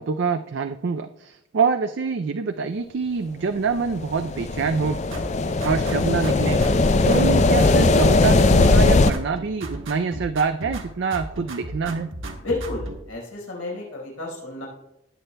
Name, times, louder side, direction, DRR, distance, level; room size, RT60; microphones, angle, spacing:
voice 1, 0.0-5.0 5.6-6.6 7.1-12.1, right 5 dB, 55° right, 7 dB, 0.4 m, -25 dB
sound 1, 3.9-9.1, left 3 dB, 35° left, 0.4 m, -19 dB
sound 2, 5.1-6.9 7.1-8.9 9.1-10.9 11.1-13.0, right 1 dB, 70° right, 1.4 m, -35 dB
voice 2, 12.4-14.7, left 2 dB, 85° left, -3 dB, 4.5 m, -31 dB
19.5 x 8.1 x 2.2 m, 0.88 s
head